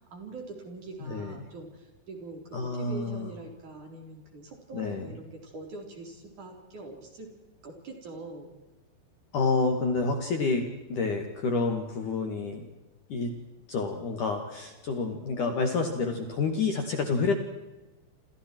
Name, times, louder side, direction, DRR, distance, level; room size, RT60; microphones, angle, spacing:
voice 1, 0.1-7.3 7.6-8.5, right 2 dB, 40° right, 2 dB, 5.1 m, -43 dB
voice 2, 2.5-3.3 4.7-5.1 9.3-10.6 10.9-12.6 13.1-13.3 13.7-17.3, left 4 dB, 50° left, 4 dB, 3.0 m, -28 dB
29.0 x 28.0 x 4.6 m, 1.1 s
omnidirectional pair, 5.5 m